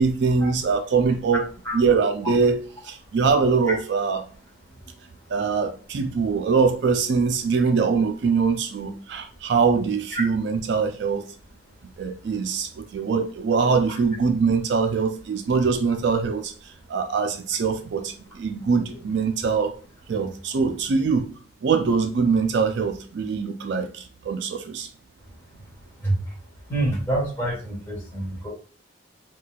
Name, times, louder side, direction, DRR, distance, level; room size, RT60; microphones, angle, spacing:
voice 1, 0.0-1.5 1.7-4.3 5.3-11.2 12.0-16.5 16.9-19.7 20.1-21.3 21.6-24.9, right 5 dB, 60° right, 0.3 m, -23 dB
voice 2, 26.7-28.5, right 1 dB, 15° left, 1.3 m, -26 dB
4.1 x 2.2 x 2.3 m
head